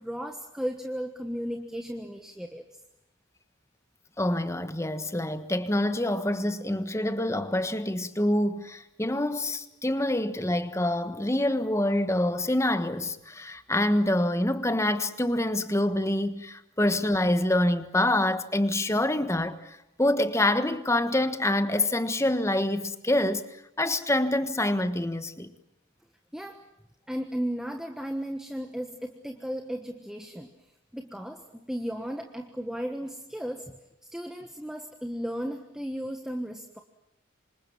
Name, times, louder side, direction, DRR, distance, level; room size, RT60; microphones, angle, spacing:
voice 1, 0.0-2.6 26.3-26.6 27.1-30.5 30.9-33.7 34.1-36.8, equal, 5° right, 1.3 m, -35 dB
voice 2, 4.2-23.4 23.8-25.5, left 1 dB, 15° left, 1.4 m, -26 dB
27.5 x 25.5 x 7.3 m
head